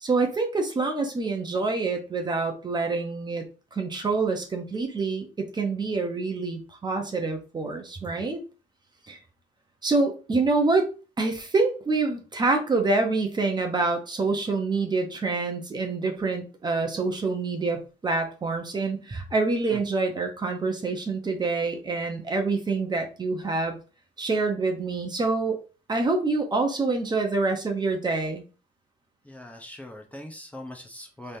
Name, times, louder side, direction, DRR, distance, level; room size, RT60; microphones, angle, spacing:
voice 1, 0.0-3.4 3.7-8.4 9.1-9.2 9.8-10.9 11.2-23.8 24.2-25.6 25.9-28.4, right 3 dB, 25° right, 4 dB, 0.9 m, -26 dB
voice 2, 29.2-31.4, left 1 dB, 10° left, 2 dB, 0.8 m, -41 dB
4.0 x 3.4 x 2.7 m, 0.34 s
cardioid pair, 110°, 17 cm